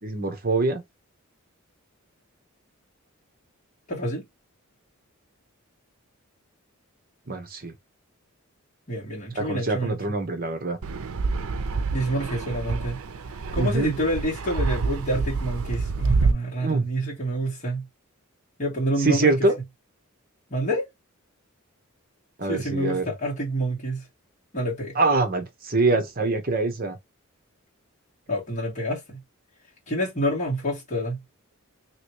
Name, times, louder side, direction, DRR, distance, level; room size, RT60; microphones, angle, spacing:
voice 1, 0.0-0.8 7.3-7.7 9.3-10.8 13.6-13.9 16.6-16.8 19.0-19.6 22.4-23.0 24.9-27.0, right 3 dB, 40° right, 0.9 m, -24 dB
voice 2, 3.9-4.2 8.9-10.0 11.9-13.0 13.5-17.8 18.6-19.3 20.5-20.9 22.4-24.0 24.5-24.9 28.3-29.2 29.9-31.2, right 1 dB, 35° left, 1.7 m, -28 dB
Fixed-wing aircraft airplane, 10.8-16.3, right 4 dB, 80° right, 0.5 m, -27 dB
3.0 x 3.0 x 2.9 m
head